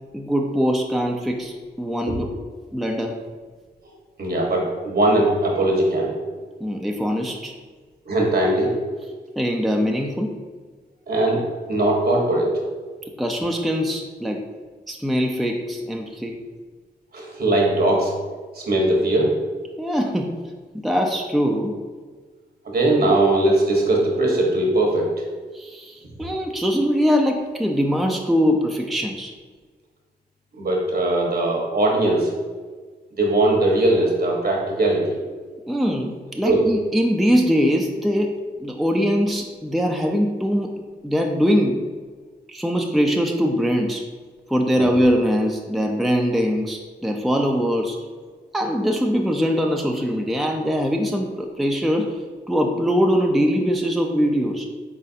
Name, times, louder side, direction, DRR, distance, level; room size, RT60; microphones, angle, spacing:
voice 1, 0.1-2.3 2.7-3.2 6.6-7.5 9.4-10.3 13.2-14.4 14.9-16.4 19.8-20.3 20.8-21.8 25.5-29.3 35.7-38.3 38.6-40.7 41.0-41.8 42.5-44.0 44.5-48.0 48.5-52.2 52.5-54.7, equal, ahead, 2 dB, 0.5 m, -22 dB
voice 2, 4.2-6.1 8.0-8.7 11.1-11.4 11.7-12.6 17.1-18.1 18.5-19.3 22.6-25.1 26.2-26.3 30.6-32.3 33.2-35.2 36.4-36.6 44.7-44.9, right 1 dB, 55° right, -1 dB, 1.2 m, -20 dB
4.1 x 4.0 x 2.7 m, 1.4 s
supercardioid pair, 40°, 19 cm